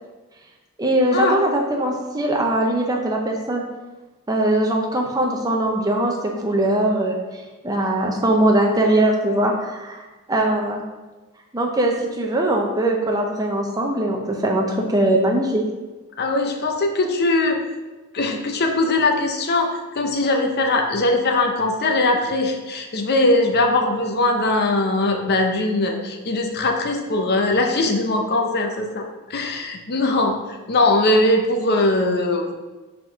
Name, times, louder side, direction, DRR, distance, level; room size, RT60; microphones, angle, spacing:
voice 1, 0.8-3.6 4.3-10.0 10.3-10.8 11.5-15.6, right 1 dB, 15° right, 0 dB, 0.6 m, -21 dB
voice 2, 16.2-17.6 18.1-29.0 29.3-30.4 30.7-32.5, left 2 dB, 45° left, 3 dB, 0.6 m, -20 dB
5.9 x 3.6 x 5.0 m, 1.2 s
head